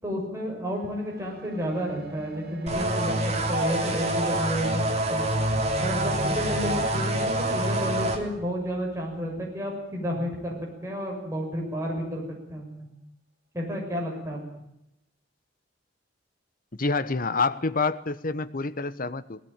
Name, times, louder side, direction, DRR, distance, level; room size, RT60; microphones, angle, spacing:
voice 1, 0.0-3.1 3.5-5.3 5.8-10.5 10.8-12.9 13.5-14.4, equal, 15° right, -1 dB, 6.5 m, -31 dB
sound 1, 0.7-10.3 11.1-11.2, equal, 60° right, 2.0 m, -40 dB
sound 2, 2.7-8.2, right 1 dB, 35° right, 3.2 m, -26 dB
voice 2, 16.8-19.4, left 3 dB, 50° left, 13 dB, 1.1 m, -27 dB
19.0 x 17.0 x 9.0 m, 0.83 s
head